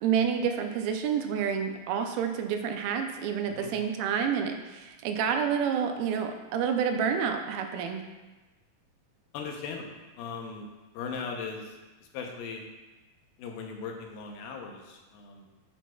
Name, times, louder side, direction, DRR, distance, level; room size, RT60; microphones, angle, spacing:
voice 1, 0.0-8.0, right 7 dB, 85° right, 5 dB, 2.4 m, -29 dB
voice 2, 9.3-10.7 10.9-11.8 12.1-12.6 13.4-15.5, left 5 dB, 80° left, 2 dB, 2.6 m, -38 dB
9.9 x 6.0 x 2.3 m, 1.2 s
omnidirectional pair, 4.2 m